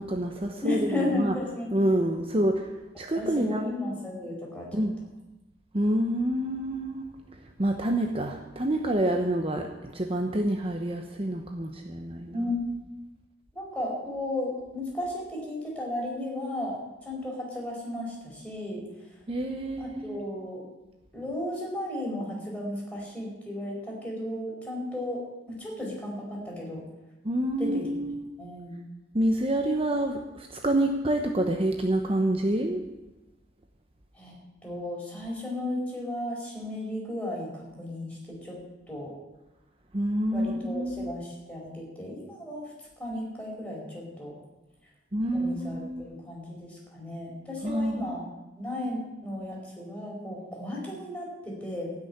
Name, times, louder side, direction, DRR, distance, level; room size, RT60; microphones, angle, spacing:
voice 1, 0.0-1.4 1.7-2.7 3.0-3.7 4.7-4.9 5.7-7.1 7.6-12.5 19.3-20.2 27.2-28.3 29.1-32.9 39.9-41.1 45.1-46.1 47.6-48.1, right 1 dB, 30° right, 4 dB, 0.9 m, -27 dB
voice 2, 0.6-1.7 3.1-4.8 12.3-12.6 13.5-18.8 19.8-20.6 21.1-25.2 25.5-26.8 27.6-27.8 28.4-28.8 34.1-34.3 34.6-38.6 38.9-39.1 40.3-44.3 45.3-48.2 48.6-51.9, left 1 dB, 5° left, -3 dB, 4.8 m, -34 dB
16.5 x 6.6 x 9.8 m, 1.0 s
head